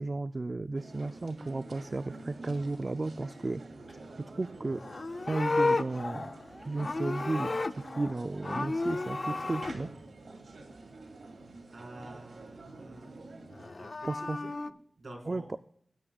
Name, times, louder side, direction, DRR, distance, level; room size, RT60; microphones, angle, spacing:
voice 1, 0.0-3.6 4.2-4.8 5.3-6.3 6.6-9.9 14.1-14.4 15.3-15.4, right 2 dB, 40° right, 11 dB, 0.4 m, -34 dB
sound 1, 0.7-13.7, right 2 dB, 85° right, 2.4 m, -48 dB
sound 2, 2.5-2.8 3.3-3.5 3.9-4.2 5.1-5.5 6.4-7.1 8.1-8.7 9.2-10.1 10.3-10.6 11.0-11.8 13.1-13.3, left 1 dB, 10° left, 3.0 m, -60 dB
Livestock farm animals working animals, 4.7-8.2 8.4-9.7 13.5-14.7, left 3 dB, 45° left, 0.5 m, -32 dB
voice 2, 11.7-13.2 13.8-15.5, right 2 dB, 55° right, 0 dB, 4.5 m, -49 dB
19.5 x 9.6 x 2.3 m, 0.63 s
wide cardioid pair, 75°, 0 cm